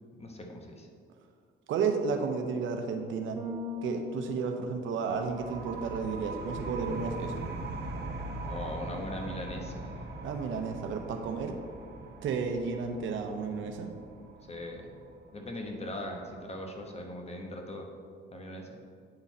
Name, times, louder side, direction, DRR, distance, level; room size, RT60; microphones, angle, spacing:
voice 1, 0.2-0.9 8.4-10.1 14.5-14.9 15.3-17.9 18.3-18.8, left 1 dB, 30° left, 2 dB, 1.1 m, -40 dB
voice 2, 1.7-3.4 3.8-7.5 10.2-11.6 12.2-13.9, right 5 dB, 75° right, 5 dB, 0.7 m, -32 dB
Bass guitar, 3.4-5.7, left 3 dB, 25° right, 1.4 m, -40 dB
sound 1, 5.2-16.5, right 2 dB, 55° right, 1.0 m, -41 dB
8.8 x 4.0 x 4.1 m, 2.2 s
cardioid pair, 90°, 20 cm